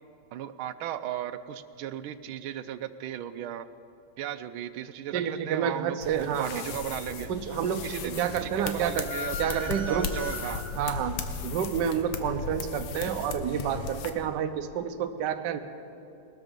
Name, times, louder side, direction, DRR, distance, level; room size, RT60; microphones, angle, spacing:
voice 1, 0.3-3.7 4.2-7.3 7.8-10.6, right 10 dB, 90° right, 12 dB, 1.4 m, -36 dB
voice 2, 5.1-6.7 7.3-9.1 9.4-10.1 10.8-15.6, right 8 dB, 65° right, 9 dB, 1.3 m, -29 dB
sound 1, 6.0-14.1, left 6 dB, 75° left, 1.7 m, -37 dB
sound 2, 9.0-10.9, left 2 dB, 15° left, 3.2 m, -38 dB
20.0 x 13.0 x 5.2 m, 2.8 s
omnidirectional pair, 2.2 m